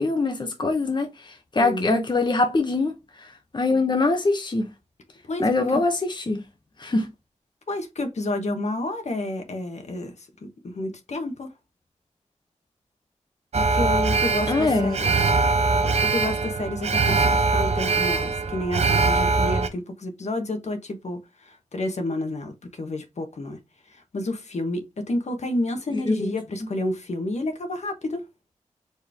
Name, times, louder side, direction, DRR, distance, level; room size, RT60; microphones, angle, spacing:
voice 1, 0.0-2.9 3.5-4.7 5.4-6.4 6.8-7.1 14.5-15.0 25.9-26.3, left 3 dB, 40° left, 0.9 m, -23 dB
voice 2, 1.6-1.9 5.3-5.8 7.7-10.1 10.4-11.5 13.5-15.1 15.8-23.6 23.9-28.2, left 1 dB, 65° left, 1.1 m, -30 dB
Alarm, 13.5-19.7, right 4 dB, 60° right, 0.7 m, -22 dB
4.6 x 3.1 x 3.5 m
cardioid pair, 50°, 13 cm